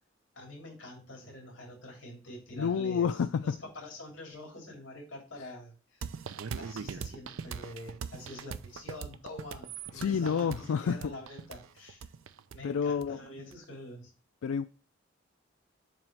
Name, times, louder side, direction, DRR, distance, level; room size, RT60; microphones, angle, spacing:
voice 1, 0.3-6.0 6.6-12.1 12.5-14.1, left 1 dB, 60° left, 3.0 m, -46 dB
voice 2, 2.5-3.6 5.4-5.5 9.9-11.1 12.6-13.2 14.4-14.6, left 6 dB, 90° left, 0.4 m, -29 dB
sound 1, 6.0-13.6, right 6 dB, 80° right, 0.4 m, -41 dB
7.5 x 3.0 x 6.0 m
head